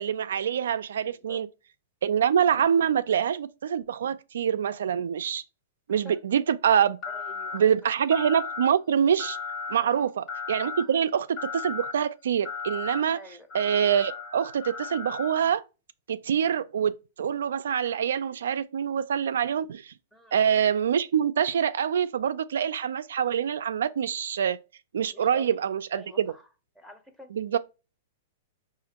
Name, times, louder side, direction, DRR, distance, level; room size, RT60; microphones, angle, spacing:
voice 1, 0.0-1.5 2.0-5.4 5.9-7.0 7.5-9.4 9.7-13.2 13.5-15.6 16.1-19.9 20.3-24.6 24.9-26.3 27.3-27.6, right 8 dB, 85° right, 0.3 m, -25 dB
sound 1, 7.0-7.6 8.1-8.7 9.2-9.8 10.3-10.8 11.4-11.9 12.4-13.0 13.5-15.5, left 5 dB, 30° left, 0.9 m, -35 dB
voice 2, 7.1-7.7 9.8-10.1 10.8-11.0 13.1-13.5 20.1-20.4 25.1-25.6 25.9-26.5 26.8-27.3, left 1 dB, 5° left, 0.6 m, -47 dB
4.9 x 2.4 x 2.8 m
hypercardioid pair, 145°, 0 cm